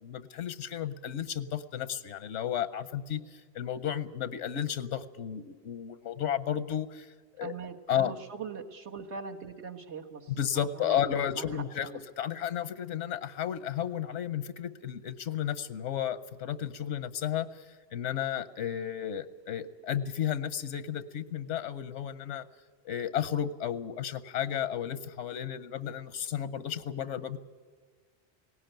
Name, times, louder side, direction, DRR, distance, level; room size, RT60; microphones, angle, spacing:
voice 1, 0.0-7.1 7.4-7.5 7.9-8.1 10.4-11.9 12.2-17.6 17.9-22.4 22.8-27.4, left 9 dB, 90° left, 14 dB, 1.1 m, -33 dB
voice 2, 7.4-12.0, right 5 dB, 70° right, 3 dB, 1.7 m, -42 dB
19.0 x 17.5 x 9.0 m, 1.5 s
omnidirectional pair, 1.2 m